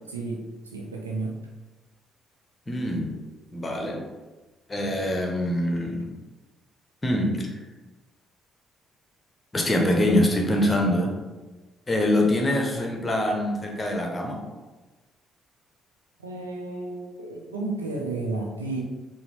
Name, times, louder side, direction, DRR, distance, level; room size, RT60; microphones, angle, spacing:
voice 1, 0.1-0.4 0.7-1.4 16.2-18.8, right 3 dB, 85° right, -1 dB, 0.4 m, -32 dB
voice 2, 2.7-3.1 3.5-4.0 4.7-6.1 7.0-7.5 9.5-11.1 11.9-14.4, left 1 dB, 25° left, 1 dB, 0.8 m, -24 dB
4.7 x 2.0 x 3.3 m, 1.2 s
figure-of-eight pair, 45°, 0 cm